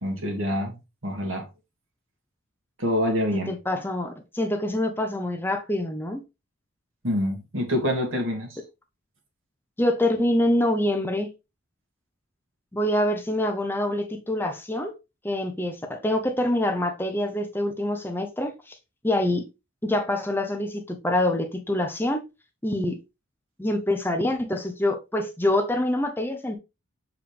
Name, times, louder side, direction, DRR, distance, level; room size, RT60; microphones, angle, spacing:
voice 1, 0.0-1.5 2.8-3.5 7.0-8.6, equal, 75° right, 2.3 m, -26 dB
voice 2, 3.5-6.2 9.8-11.3 12.7-14.9 15.2-18.8 19.0-19.4 19.8-22.2 22.6-23.0 23.6-26.6, left 1 dB, 10° left, 0.7 m, -25 dB
6.7 x 4.9 x 3.4 m
head